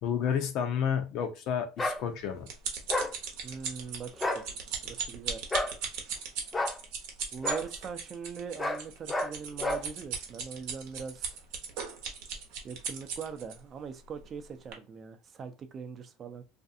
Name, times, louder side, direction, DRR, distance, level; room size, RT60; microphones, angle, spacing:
voice 1, 0.0-2.5, left 8 dB, 60° left, 0.6 m, -30 dB
sound 1, 1.8-2.0 2.9-3.1 4.1-4.4 5.5-5.7 6.5-6.8 7.4-7.6 8.6-8.8 9.1-9.3 9.6-9.8, left 1 dB, 15° left, 0.5 m, -30 dB
sound 2, 1.9-13.5 14.2-14.4 14.7-14.8, right 6 dB, 75° right, 0.7 m, -37 dB
voice 2, 3.4-4.5 4.8-5.4 7.3-11.4 12.6-16.4, right 6 dB, 40° right, 0.5 m, -41 dB
2.5 x 2.3 x 2.6 m
supercardioid pair, 95°, 0 cm